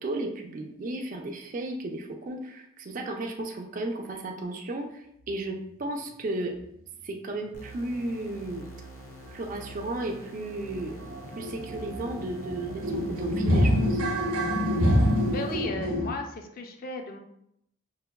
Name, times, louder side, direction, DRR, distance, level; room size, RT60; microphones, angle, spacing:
voice 1, 0.0-6.5 7.0-8.7 9.3-10.9 11.4-14.0, right 2 dB, 35° right, 2 dB, 0.4 m, -34 dB
sound 1, 7.5-15.5, right 2 dB, 80° left, 0.8 m, -46 dB
sound 2, 9.2-9.3 9.7-9.8 10.1-16.1, equal, 75° right, 0.7 m, -27 dB
voice 2, 15.3-17.2, left 3 dB, 40° left, 4 dB, 0.4 m, -35 dB
5.5 x 2.2 x 2.2 m, 0.76 s
head